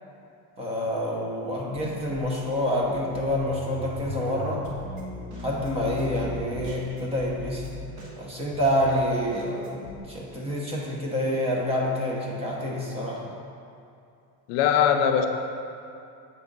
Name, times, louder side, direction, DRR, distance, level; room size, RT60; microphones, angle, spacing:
voice 1, 0.6-4.7 5.4-7.6 8.2-13.2, equal, 15° right, -3 dB, 0.7 m, -27 dB
sound 1, 1.7-2.4 2.8-7.9, equal, 75° right, 1.4 m, -39 dB
Drum kit, 4.6-10.0, equal, 45° right, 1.2 m, -46 dB
voice 2, 14.5-15.3, left 8 dB, 65° left, 6 dB, 0.6 m, -20 dB
7.4 x 3.6 x 5.2 m, 2.6 s
cardioid pair, 175°, 43 cm